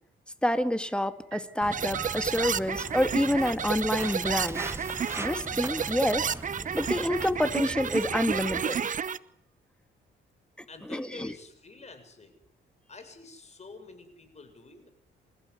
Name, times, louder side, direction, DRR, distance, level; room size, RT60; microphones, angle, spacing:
voice 1, 0.4-4.6 5.2-6.3 6.7-8.8 10.9-11.3, left 1 dB, 5° left, 10 dB, 2.3 m, -28 dB
sound 1, 0.9-1.1 1.3-3.2 4.0-6.0 7.1-7.3 7.7-9.0, right 10 dB, 70° right, 2.6 m, -46 dB
Walk footsteps, 1.6-8.6, right 2 dB, 15° right, 1.4 m, -41 dB
sound 2, 1.7-9.2, right 7 dB, 40° right, 1.0 m, -31 dB
voice 2, 10.7-12.4 12.9-14.9, left 3 dB, 35° left, 8 dB, 7.1 m, -48 dB
28.0 x 15.5 x 9.7 m, 0.69 s
cardioid pair, 90°, 20 cm